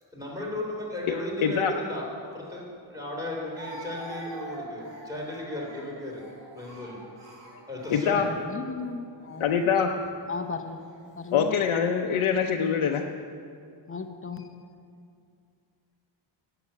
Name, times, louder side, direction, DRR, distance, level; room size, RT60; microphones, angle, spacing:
voice 1, 0.1-6.2 6.5-7.0 7.7-8.3, left 1 dB, 10° right, -3 dB, 3.2 m, -35 dB
voice 2, 1.4-1.7 7.9-8.3 9.4-9.9 11.3-13.1, left 7 dB, 85° left, 2 dB, 0.7 m, -24 dB
Speech, 2.4-2.5 3.5-8.4 9.2-9.5 10.4-11.0, right 1 dB, 65° right, 3.0 m, -44 dB
voice 3, 8.2-9.4 9.9-10.0 10.3-10.8 11.2-11.6 13.9-14.5, left 4 dB, 30° left, 7 dB, 0.7 m, -36 dB
11.5 x 7.0 x 8.6 m, 2.4 s
wide cardioid pair, 140°, 47 cm